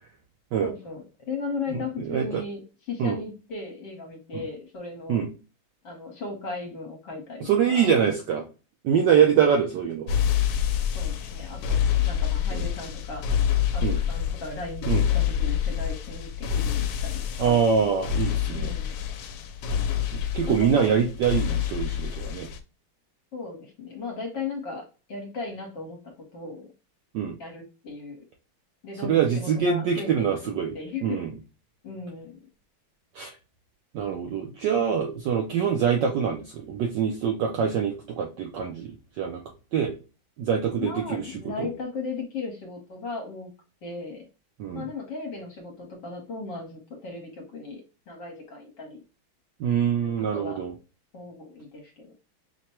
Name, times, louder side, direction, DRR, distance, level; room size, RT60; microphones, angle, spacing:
voice 1, 0.6-5.2 5.8-7.9 9.2-9.3 10.9-13.3 13.7-17.6 18.5-19.0 20.4-20.9 23.3-26.7 27.4-28.2 28.8-31.3 31.8-32.4 40.8-43.5 43.8-44.2 44.7-49.0 50.0-50.6 51.1-52.1, left 3 dB, 65° left, 1 dB, 1.6 m, -37 dB
voice 2, 1.7-2.4 3.0-3.2 4.3-4.4 5.1-5.3 7.4-8.5 8.8-10.1 12.5-12.7 13.8-14.0 14.9-15.0 17.4-18.7 20.1-22.5 27.1-27.4 29.0-30.7 31.0-31.3 33.1-33.3 33.9-39.4 39.7-39.9 40.4-41.7 44.6-44.9 49.6-50.7, right 7 dB, 70° right, 2 dB, 1.1 m, -24 dB
sound 1, 10.1-22.6, left 9 dB, 85° left, 1.4 m, -27 dB
5.9 x 2.2 x 2.8 m, 0.32 s
omnidirectional pair, 2.2 m